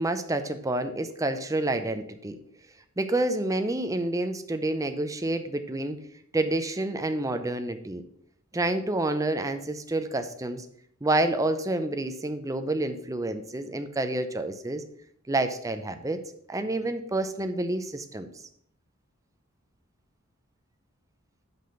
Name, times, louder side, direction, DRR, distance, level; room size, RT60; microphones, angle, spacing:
voice 1, 0.0-2.4 3.0-6.0 6.3-8.0 8.5-10.6 11.0-14.8 15.3-16.2 16.5-18.3, right 2 dB, 15° right, 8 dB, 0.6 m, -28 dB
5.9 x 5.4 x 6.7 m, 0.66 s
head